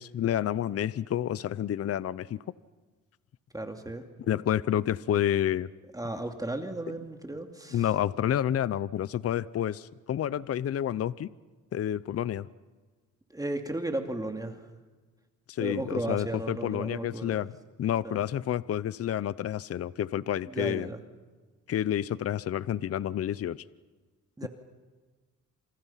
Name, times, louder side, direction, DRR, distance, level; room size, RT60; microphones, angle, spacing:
voice 1, 0.0-2.4 4.3-5.7 7.7-11.3 11.7-12.5 15.5-17.5 17.8-20.9 21.7-23.6 24.4-24.5, left 10 dB, 50° left, 18 dB, 0.7 m, -29 dB
voice 2, 3.5-4.0 5.9-7.9 13.3-14.6 15.6-17.4 18.0-18.2 20.5-21.0 24.4-24.5, right 1 dB, 10° right, 4 dB, 2.6 m, -34 dB
29.5 x 28.0 x 5.8 m, 1.3 s
cardioid pair, 90°, 30 cm